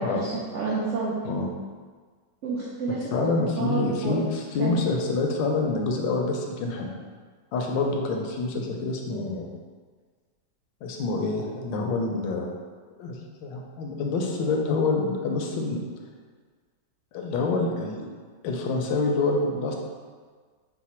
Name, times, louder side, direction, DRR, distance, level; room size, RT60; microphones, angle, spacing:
voice 1, 0.0-1.1 2.4-3.1 3.6-4.2 4.6-4.9, right 3 dB, 75° right, -5 dB, 0.6 m, -29 dB
voice 2, 3.1-6.9 7.5-9.5 10.8-12.5 13.0-15.8 17.1-18.0 18.4-19.8, left 3 dB, 85° left, 1 dB, 1.3 m, -27 dB
4.8 x 2.1 x 4.2 m, 1.6 s
omnidirectional pair, 1.9 m